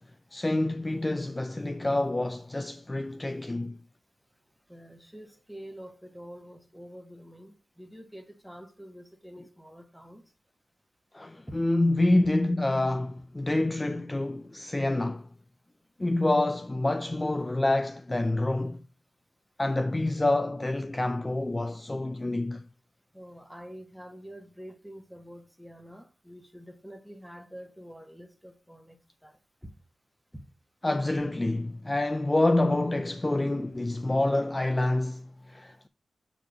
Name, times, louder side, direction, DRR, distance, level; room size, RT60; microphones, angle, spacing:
voice 1, 0.3-3.8 11.1-15.3 16.0-18.8 19.6-22.6 30.8-35.9, left 2 dB, 20° left, 0.4 m, -27 dB
voice 2, 4.7-10.2 11.5-11.6 23.1-29.4 29.6-29.7 30.3-30.4, equal, ahead, 1.2 m, -47 dB
6.9 x 3.6 x 4.6 m
wide cardioid pair, 85°, 0 cm